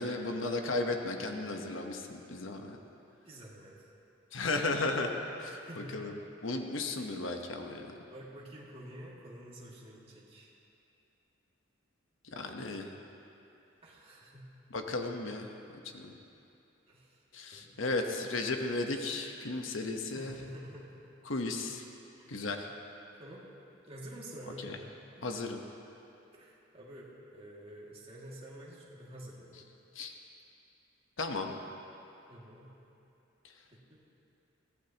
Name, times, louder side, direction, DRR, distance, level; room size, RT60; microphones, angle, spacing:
voice 1, 0.0-2.8 4.3-6.2 6.4-7.9 12.4-12.9 14.7-15.5 15.9-16.1 17.3-20.4 21.3-21.8 22.3-22.7 24.6-24.8 25.2-25.6 29.9-30.1 31.2-31.6, left 2 dB, 65° left, 3 dB, 1.1 m, -35 dB
voice 2, 3.2-3.9 5.4-6.1 8.1-10.5 13.8-14.5 16.9-17.2 17.5-17.8 20.1-21.0 22.2-22.5 23.2-23.5 23.8-24.8 25.2-25.3 26.3-29.6 32.3-32.7 33.7-34.0, right 1 dB, 30° right, -5 dB, 2.3 m, -48 dB
22.0 x 15.5 x 3.0 m, 2.8 s
head